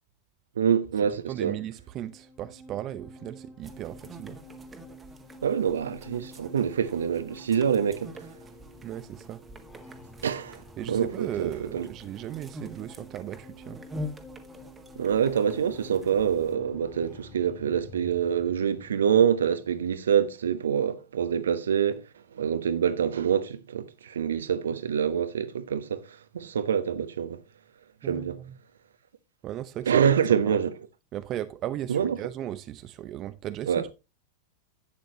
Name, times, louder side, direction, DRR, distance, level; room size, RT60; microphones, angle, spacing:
voice 1, 0.6-1.6 5.4-8.1 10.2-10.6 10.9-11.9 15.0-22.0 22.3-27.4 28.0-28.4 29.9-30.7 31.9-32.2 33.7-33.8, right 8 dB, 65° right, 1.0 m, -26 dB
voice 2, 1.3-4.4 8.8-9.4 10.8-13.8 28.0-28.6 29.4-30.0 30.3-30.6 31.1-33.9, right 12 dB, 35° right, 0.7 m, -36 dB
sound 1, 1.8-20.3, left 1 dB, 10° left, 2.4 m, -49 dB
sound 2, 3.6-16.6, left 1 dB, 15° right, 1.6 m, -46 dB
11.5 x 9.0 x 2.9 m
figure-of-eight pair, 90°, 0 cm